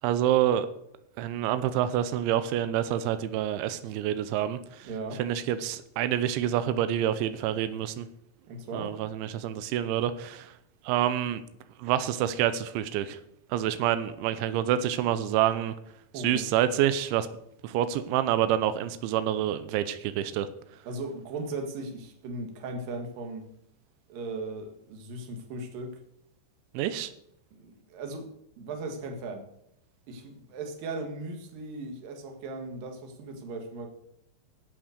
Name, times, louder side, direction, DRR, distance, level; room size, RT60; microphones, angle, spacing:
voice 1, 0.0-0.7 1.2-4.9 5.2-8.1 8.7-10.5 10.9-11.4 11.8-13.2 13.5-15.7 16.2-17.3 17.6-20.5 26.7-27.1, right 11 dB, 90° right, 13 dB, 3.1 m, -27 dB
voice 2, 4.8-5.2 8.5-8.9 16.1-16.6 20.9-23.5 24.1-26.0 27.5-29.4 30.1-33.9, right 2 dB, 60° right, 4 dB, 3.1 m, -37 dB
11.5 x 7.9 x 6.5 m, 0.76 s
omnidirectional pair, 5.2 m